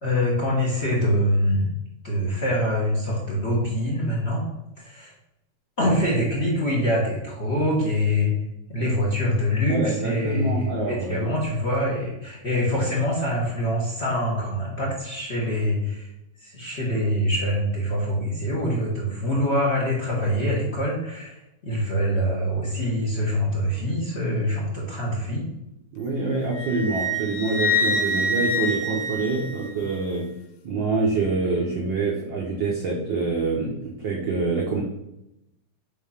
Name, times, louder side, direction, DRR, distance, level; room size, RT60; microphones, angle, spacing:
voice 1, 0.0-1.6 2.0-4.4 4.8-5.1 5.8-8.3 8.7-16.1 16.4-25.4, equal, 45° left, -4 dB, 0.8 m, -24 dB
voice 2, 9.7-11.3 25.9-30.3 30.6-34.8, right 3 dB, 80° right, -1 dB, 1.0 m, -26 dB
Wind instrument woodwind instrument, 26.5-30.0, left 1 dB, 75° left, 1.3 m, -26 dB
5.6 x 3.6 x 5.7 m, 0.86 s
omnidirectional pair, 3.3 m